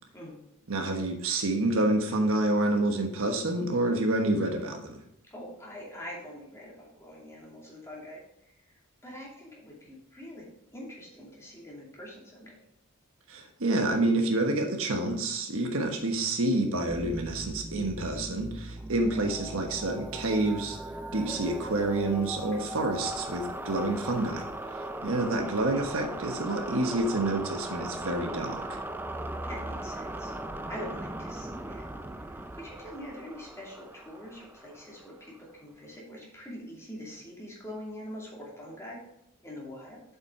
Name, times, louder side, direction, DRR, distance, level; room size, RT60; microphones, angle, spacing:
voice 1, 0.7-5.0 13.3-20.8 21.1-28.8, right 2 dB, 65° right, 3 dB, 1.2 m, -28 dB
voice 2, 5.2-12.7 22.4-22.7 29.4-30.3 30.7-39.0 39.4-40.0, equal, 15° left, -4 dB, 2.6 m, -44 dB
sound 1, 16.9-35.4, right 1 dB, 10° right, 0.4 m, -39 dB
7.7 x 5.8 x 4.9 m, 0.78 s
head